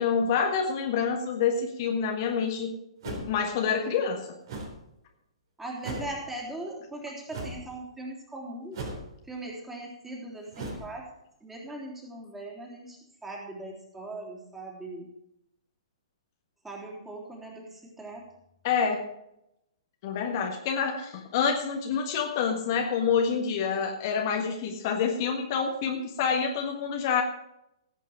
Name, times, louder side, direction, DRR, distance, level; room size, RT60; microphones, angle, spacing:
voice 1, 0.0-2.7 3.0-4.2 18.6-19.1 20.0-27.2, left 6 dB, 40° left, 2 dB, 1.6 m, -27 dB
sound 1, 3.0-3.5 4.5-4.8 5.8-6.2 7.3-7.6 8.7-9.2 10.5-10.9, right 2 dB, 50° right, 3.9 m, -37 dB
voice 2, 5.6-8.8 9.3-11.1 11.4-15.1 16.6-18.2, right 1 dB, 5° right, -2 dB, 3.4 m, -40 dB
17.0 x 8.3 x 5.0 m, 0.82 s
figure-of-eight pair, 120°, 3 cm